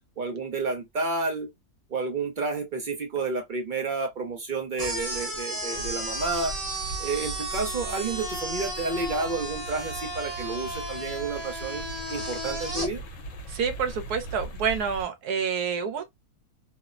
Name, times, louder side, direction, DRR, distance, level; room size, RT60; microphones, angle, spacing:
voice 1, 0.2-1.5 1.9-6.5 7.0-11.8 12.1-13.0, right 3 dB, 60° right, 0.5 m, -30 dB
sound 1, 4.8-12.9, right 1 dB, 30° right, 0.8 m, -34 dB
sound 2, 5.7-15.0, right 2 dB, 65° left, 1.0 m, -40 dB
voice 2, 13.5-16.0, right 6 dB, 85° right, 1.2 m, -28 dB
2.9 x 2.0 x 2.4 m
omnidirectional pair, 1.6 m